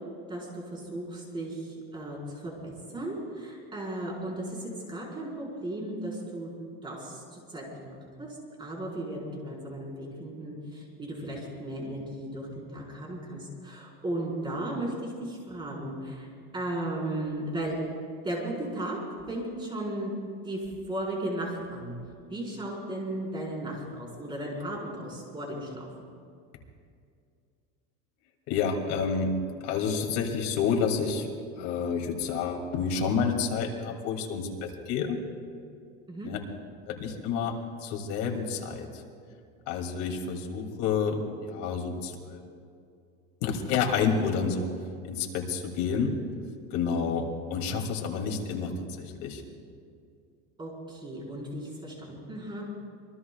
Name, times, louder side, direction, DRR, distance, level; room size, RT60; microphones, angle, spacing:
voice 1, 0.3-6.5 6.8-8.3 8.6-16.3 16.5-17.8 18.2-19.0 19.3-20.1 20.4-20.6 20.9-22.0 22.3-25.9 36.1-36.3 50.6-52.6, right 1 dB, 15° right, -3 dB, 4.8 m, -35 dB
voice 2, 28.5-29.3 29.6-31.3 31.6-35.2 36.2-36.4 36.9-37.5 37.8-39.0 39.7-42.4 43.4-44.7 45.1-46.1 46.7-48.7 49.0-49.4, left 6 dB, 65° left, 1 dB, 2.7 m, -29 dB
26.5 x 22.0 x 2.4 m, 2.3 s
cardioid pair, 155°, 30 cm